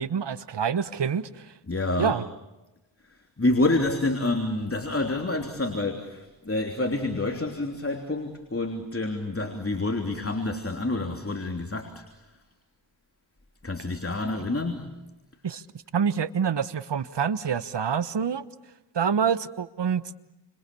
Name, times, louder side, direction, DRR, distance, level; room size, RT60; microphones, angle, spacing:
voice 1, 0.0-1.5 2.0-2.2 15.4-15.6 15.9-18.5 18.9-20.0, right 7 dB, 65° right, 15 dB, 1.2 m, -26 dB
voice 2, 1.7-2.2 3.1-12.0 13.6-14.9, left 2 dB, 30° left, 4 dB, 3.2 m, -28 dB
30.0 x 26.5 x 7.0 m, 1.0 s
cardioid pair, 55°, 44 cm